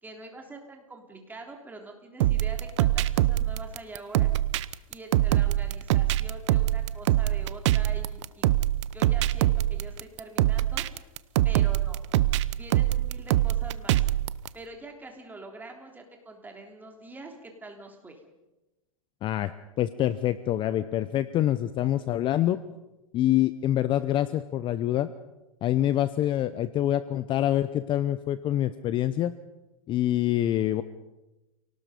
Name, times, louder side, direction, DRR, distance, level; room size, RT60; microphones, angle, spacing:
voice 1, 0.0-4.3 4.9-8.5 8.9-11.1 11.4-12.0 12.5-14.1 14.5-18.2, right 2 dB, 10° right, 3 dB, 3.6 m, -44 dB
sound 1, 2.2-14.5, right 14 dB, 55° right, 0.8 m, -24 dB
voice 2, 19.2-22.6 23.1-25.1 25.6-29.3 29.9-30.8, left 12 dB, 30° left, 14 dB, 0.7 m, -26 dB
29.0 x 18.5 x 5.3 m, 1.0 s
hypercardioid pair, 125°, 18 cm